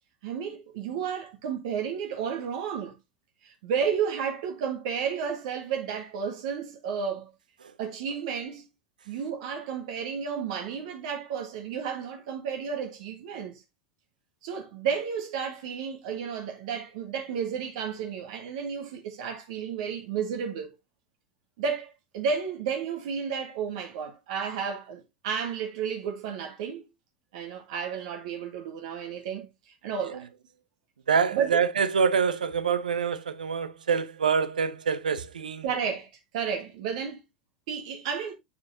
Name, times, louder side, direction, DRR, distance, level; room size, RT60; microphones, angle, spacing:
voice 1, 0.2-2.9 3.4-7.3 7.8-8.7 9.1-13.6 14.4-20.7 21.6-26.9 27.3-30.3 31.3-31.6 35.6-37.2 37.7-38.3, right 7 dB, 55° right, 1.5 m, -32 dB
voice 2, 31.1-35.6, right 6 dB, 75° right, 0.7 m, -26 dB
7.3 x 6.4 x 2.7 m
figure-of-eight pair, 80°, 4 cm